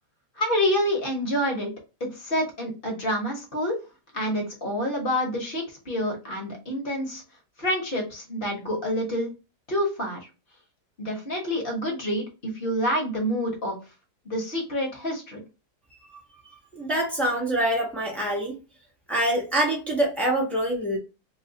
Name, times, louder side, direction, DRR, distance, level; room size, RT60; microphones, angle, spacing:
voice 1, 0.4-1.7 2.0-3.8 4.1-7.2 7.6-9.3 9.7-10.2 11.0-12.2 12.5-13.8 14.2-15.4, equal, 40° left, 1.0 m, -27 dB
voice 2, 16.7-18.6 19.1-21.0, right 1 dB, ahead, 0.6 m, -25 dB
3.1 x 2.0 x 3.8 m
omnidirectional pair, 1.8 m